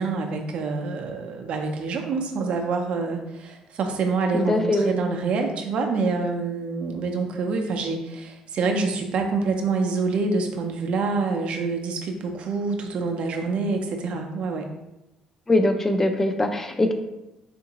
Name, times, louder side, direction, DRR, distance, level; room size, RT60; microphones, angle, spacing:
voice 1, 0.0-14.7, right 4 dB, 60° right, 3 dB, 0.5 m, -26 dB
voice 2, 4.3-5.0 15.5-16.9, left 1 dB, 15° left, 5 dB, 0.3 m, -22 dB
3.6 x 2.5 x 2.8 m, 0.93 s
cardioid pair, 110°, 2 cm